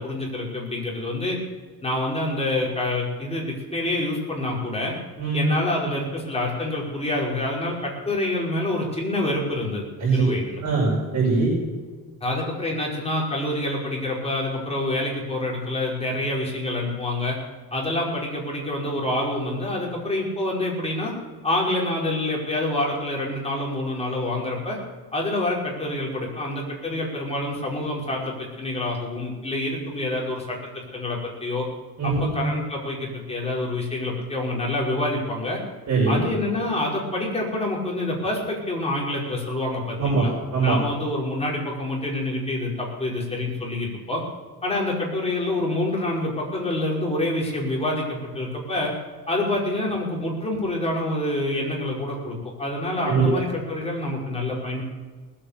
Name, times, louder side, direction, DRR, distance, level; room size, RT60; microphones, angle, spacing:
voice 1, 0.0-1.4 1.8-4.9 5.3-9.8 10.1-10.6 12.2-17.4 17.7-21.1 21.4-24.8 25.1-31.7 32.0-35.6 36.1-44.2 44.6-48.9 49.3-54.8, left 1 dB, 15° left, -3 dB, 5.4 m, -27 dB
voice 2, 10.6-11.5 32.0-32.3 35.9-36.2 40.0-40.3 40.5-40.8 53.1-53.2, right 4 dB, 45° right, -5 dB, 5.7 m, -21 dB
19.5 x 8.8 x 6.8 m, 1.4 s
cardioid pair, 115°, 37 cm